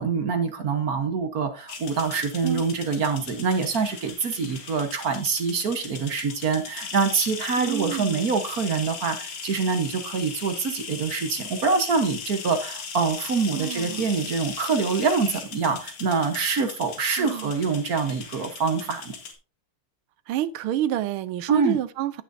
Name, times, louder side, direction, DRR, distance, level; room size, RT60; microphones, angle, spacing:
voice 1, 0.0-19.1 21.5-21.8, right 5 dB, 50° right, 1.4 m, -25 dB
sound 1, 1.7-19.3, left 6 dB, 75° left, 2.5 m, -38 dB
voice 2, 7.6-8.4 13.5-14.1 17.2-17.5 20.3-22.2, right 12 dB, 80° right, 1.5 m, -28 dB
15.5 x 6.0 x 2.6 m
omnidirectional pair, 2.3 m